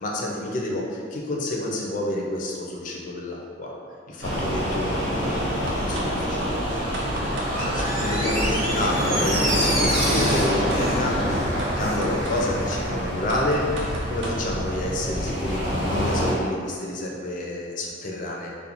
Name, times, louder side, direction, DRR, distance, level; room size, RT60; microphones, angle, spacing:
voice 1, 0.0-3.7 4.1-5.4 5.8-18.5, left 1 dB, 45° left, -2 dB, 0.4 m, -29 dB
sound 1, 4.2-16.3, equal, 90° right, 1.3 m, -26 dB
sound 2, 5.7-6.1 6.4-6.5 6.9-7.9 8.4-8.5 8.8-9.1 9.5-9.6 10.0-11.0 11.6-11.7 12.0-12.3 12.7-12.8 13.3-14.4, right 1 dB, 75° right, 0.4 m, -35 dB
Door, 7.4-12.0 12.3-12.4, equal, 35° right, 0.7 m, -29 dB
2.4 x 2.1 x 2.9 m, 2.1 s
head